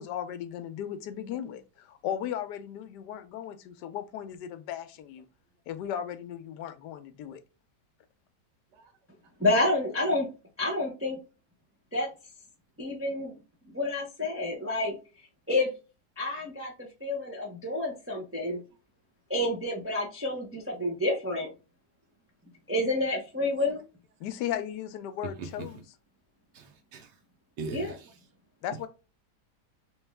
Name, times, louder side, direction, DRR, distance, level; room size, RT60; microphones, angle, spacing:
voice 1, 0.0-5.2 5.7-7.4 24.2-25.8 28.6-28.9, left 10 dB, 80° left, 1.2 m, -36 dB
voice 2, 9.4-10.3 10.6-11.2 11.9-12.1 12.8-13.3 13.7-15.0 15.5-15.7 16.2-16.7 17.0-18.6 19.3-21.5 22.7-23.8 27.7-27.9, left 2 dB, 20° right, 0.3 m, -29 dB
voice 3, 26.5-27.1 27.6-28.1, right 4 dB, 85° right, 1.3 m, -40 dB
3.3 x 3.1 x 3.4 m
omnidirectional pair, 1.8 m